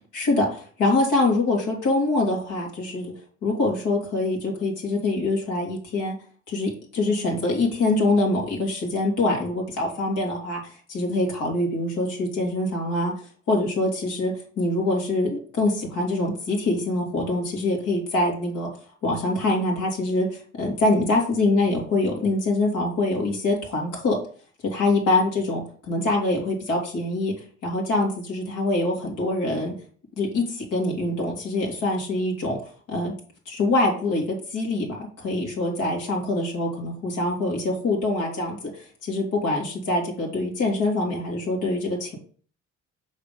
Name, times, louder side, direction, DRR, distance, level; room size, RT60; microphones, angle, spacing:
voice 1, 0.1-3.1 3.4-6.2 6.5-10.6 10.9-13.1 13.5-18.7 19.0-24.2 24.6-27.3 27.6-29.7 30.2-32.6 32.9-33.1 33.5-42.2, left 2 dB, 90° left, -2 dB, 2.8 m, -24 dB
6.0 x 4.0 x 5.3 m, 0.43 s
cardioid pair, 90°, 30 cm